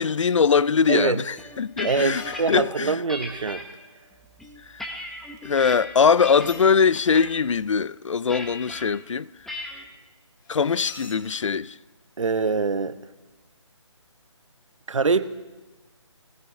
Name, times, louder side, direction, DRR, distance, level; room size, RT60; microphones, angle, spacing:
voice 1, 0.0-2.2 2.5-3.0 4.7-4.9 5.4-9.3 10.5-11.7, left 6 dB, 75° left, 0.5 m, -21 dB
voice 2, 0.9-1.2 1.8-3.6 12.2-13.0 14.9-15.3, right 4 dB, 75° right, 1.0 m, -24 dB
sound 1, 1.4-2.6 3.1-3.6 4.2-5.8 6.2-6.6 6.9-7.3 8.3-8.8 9.5-9.8, left 1 dB, ahead, 0.8 m, -36 dB
sound 2, 1.5-1.6 2.0-4.9 6.0-7.5 10.4-11.6, left 4 dB, 40° left, 2.5 m, -46 dB
20.5 x 16.5 x 3.7 m
figure-of-eight pair, 160°, 16 cm